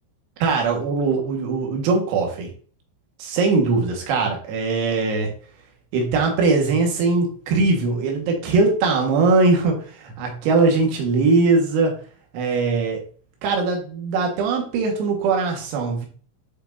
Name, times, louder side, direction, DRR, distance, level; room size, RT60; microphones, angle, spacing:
voice 1, 0.4-2.5 3.2-5.3 5.9-12.0 12.3-13.0 13.4-16.1, right 3 dB, 85° right, 1 dB, 4.4 m, -21 dB
9.9 x 5.5 x 2.7 m, 0.43 s
omnidirectional pair, 6.0 m